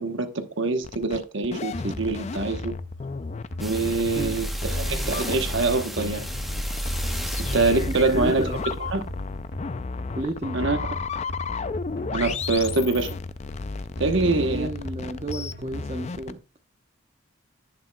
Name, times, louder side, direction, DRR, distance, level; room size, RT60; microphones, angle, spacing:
voice 1, 0.0-2.7 3.6-6.3 7.4-8.5 8.9-9.1 10.5-10.8 12.1-13.2 14.0-14.7, right 3 dB, 60° right, 1.0 m, -25 dB
sound 1, 0.8-16.3, left 4 dB, 30° left, 0.3 m, -34 dB
sound 2, 1.7-16.0, left 1 dB, 50° left, 1.1 m, -38 dB
sound 3, 3.6-10.1 10.6-10.7, equal, ahead, 0.8 m, -32 dB
voice 2, 7.9-8.6 10.1-10.7 14.2-16.4, right 1 dB, 30° right, 0.8 m, -32 dB
10.5 x 8.8 x 2.2 m
head